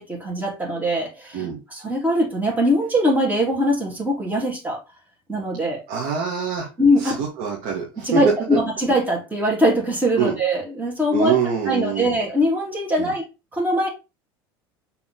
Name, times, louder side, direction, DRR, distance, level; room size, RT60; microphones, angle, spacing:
voice 1, 0.0-1.4 1.7-4.8 5.3-5.8 6.8-7.2 8.0-11.4 11.7-13.3 13.5-13.9, equal, 15° right, 3.4 m, -21 dB
voice 2, 5.9-6.7 7.0-8.2 10.2-10.4 11.1-12.1 13.0-13.1, right 7 dB, 65° right, 2.1 m, -25 dB
6.7 x 4.2 x 3.9 m
hypercardioid pair, 85°, 13 cm